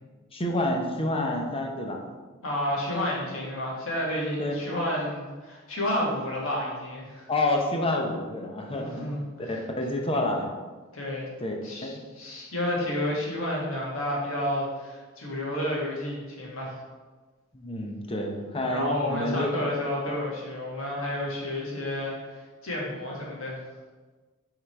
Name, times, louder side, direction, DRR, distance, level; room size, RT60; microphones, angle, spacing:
voice 1, 0.3-2.0 4.4-4.5 7.3-9.2 9.5-10.5 11.4-11.5 11.8-12.0 17.5-19.5, left 1 dB, 25° left, 2 dB, 0.8 m, -28 dB
voice 2, 2.4-7.3 8.7-9.6 10.9-11.3 11.6-16.8 18.7-23.6, left 1 dB, 75° left, -3 dB, 1.7 m, -31 dB
6.1 x 3.8 x 4.6 m, 1.3 s
head